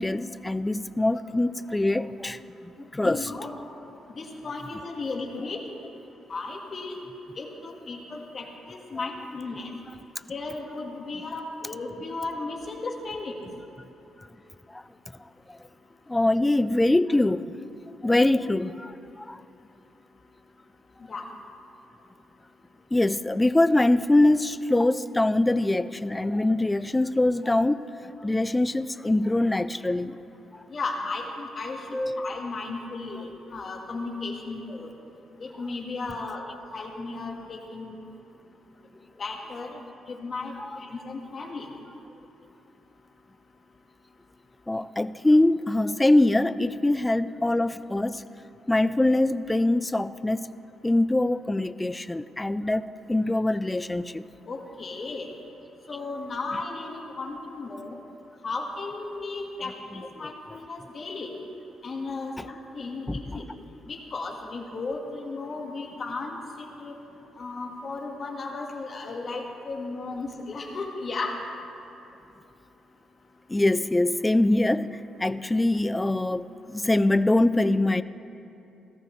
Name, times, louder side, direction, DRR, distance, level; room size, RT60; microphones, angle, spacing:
voice 1, 0.0-3.3 9.0-9.1 14.7-14.8 15.5-15.6 16.1-17.4 18.0-19.4 22.9-30.2 30.5-30.6 31.9-32.3 40.6-40.8 44.7-48.2 48.7-50.5 50.8-52.8 53.1-54.2 63.1-63.4 73.5-78.0, left 2 dB, 15° left, 14 dB, 0.4 m, -23 dB
voice 2, 3.0-3.6 4.2-5.6 6.3-6.9 7.4-9.7 10.3-13.4 21.1-21.3 30.7-31.8 32.2-34.9 35.4-36.4 36.7-38.0 39.2-39.8 40.1-41.7 54.5-55.3 55.9-58.0 58.4-61.3 61.8-63.4 63.9-67.0 67.4-71.4, left 3 dB, 45° left, 1 dB, 1.8 m, -35 dB
17.5 x 14.0 x 3.2 m, 2.8 s
cardioid pair, 90°, 0 cm